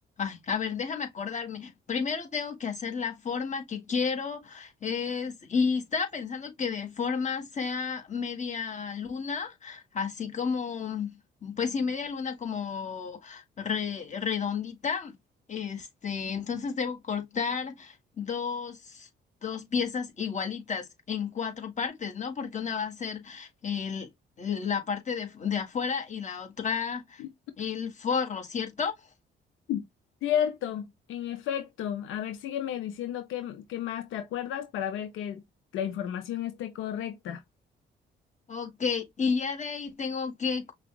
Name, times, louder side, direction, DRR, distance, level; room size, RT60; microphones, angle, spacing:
voice 1, 0.2-15.2 15.5-19.1 19.4-24.1 24.4-27.2 27.6-28.9 38.5-40.7, left 6 dB, 35° left, 1.6 m, -32 dB
voice 2, 30.2-35.4 35.7-37.4, left 10 dB, 85° left, 0.6 m, -32 dB
5.8 x 2.3 x 2.3 m
cardioid pair, 90°, 20 cm